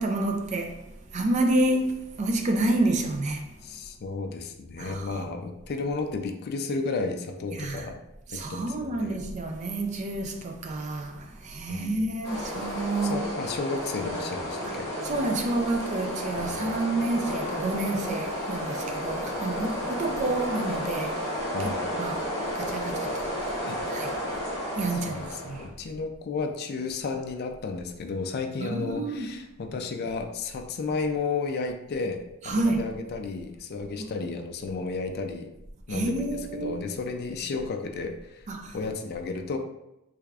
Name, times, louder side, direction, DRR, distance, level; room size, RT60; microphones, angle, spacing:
voice 1, 0.0-3.5 4.8-5.3 7.5-7.9 8.3-13.3 14.7-14.8 15.0-21.3 22.0-22.2 22.5-23.3 23.9-24.1 24.8-25.7 28.6-29.3 32.4-32.8 35.9-36.9 38.5-38.8, right 2 dB, 30° right, 0.3 m, -29 dB
voice 2, 3.6-8.0 8.3-9.2 11.7-12.1 13.0-14.9 16.4-17.0 21.5-21.9 23.7-23.8 24.9-35.5 35.9-38.5 38.7-39.6, left 4 dB, 45° left, 0.3 m, -33 dB
sound 1, 12.2-25.7, equal, 15° left, 1.4 m, -32 dB
3.4 x 3.3 x 2.4 m
head